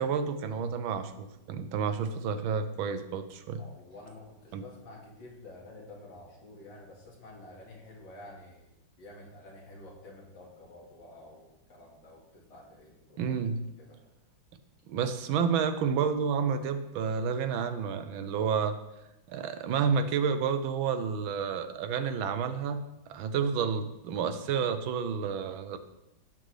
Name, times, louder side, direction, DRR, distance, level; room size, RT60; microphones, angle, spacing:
voice 1, 0.0-3.6 4.5-4.6 13.2-13.6 14.9-18.8 19.3-22.8 23.1-25.8, right 6 dB, 90° right, 10 dB, 1.5 m, -30 dB
voice 2, 3.6-13.3 13.8-14.0, left 2 dB, 70° left, -2 dB, 2.7 m, -50 dB
15.0 x 6.1 x 3.3 m, 0.90 s
omnidirectional pair, 2.1 m